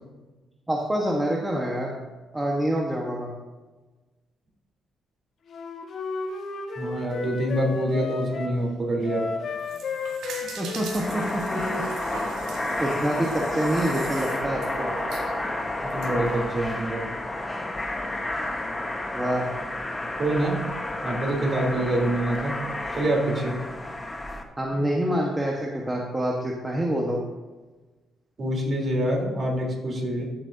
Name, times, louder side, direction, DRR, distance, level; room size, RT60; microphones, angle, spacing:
voice 1, 0.7-1.9 2.3-3.3 10.6-11.8 12.8-14.9 19.1-19.5 24.6-27.2, right 1 dB, 15° right, -2 dB, 1.2 m, -26 dB
Wind instrument woodwind instrument, 5.5-8.6 9.0-12.3, left 4 dB, 60° left, 1.3 m, -33 dB
voice 2, 6.8-9.3 15.9-17.1 20.2-20.6 21.0-22.6 23.0-23.6 28.4-30.3, right 1 dB, 40° right, -1 dB, 3.5 m, -26 dB
sound 1, 9.5-16.1, right 4 dB, 85° right, 1.7 m, -40 dB
sound 2, 10.8-24.4, left 1 dB, 20° left, 1.2 m, -31 dB
14.5 x 7.4 x 2.7 m, 1.2 s
cardioid pair, 90°, 0 cm